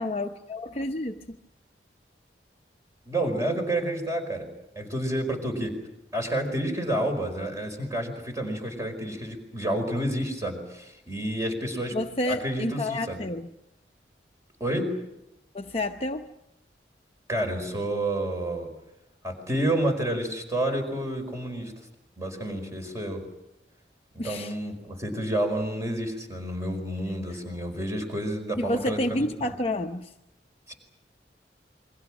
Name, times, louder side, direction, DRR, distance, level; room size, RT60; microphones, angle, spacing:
voice 1, 0.0-1.4 11.9-13.5 15.5-16.3 24.2-24.5 27.3-27.4 28.6-30.1, left 1 dB, 35° left, 4 dB, 0.8 m, -30 dB
voice 2, 3.1-4.5 4.7-5.7 6.1-12.0 12.3-13.2 14.6-14.9 17.3-18.7 19.2-21.7 22.2-23.2 24.1-29.5 30.7-30.8, right 1 dB, 15° right, 4 dB, 4.9 m, -29 dB
29.0 x 23.5 x 6.2 m, 0.87 s
head